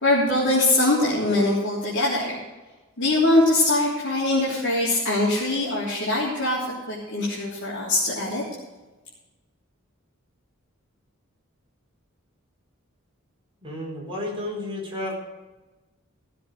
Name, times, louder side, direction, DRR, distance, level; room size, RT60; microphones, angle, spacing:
voice 1, 0.0-2.4 3.0-8.4, left 2 dB, 60° left, -7 dB, 3.4 m, -22 dB
voice 2, 13.6-15.2, left 1 dB, 25° right, -3 dB, 4.7 m, -32 dB
16.0 x 7.8 x 6.5 m, 1.2 s
head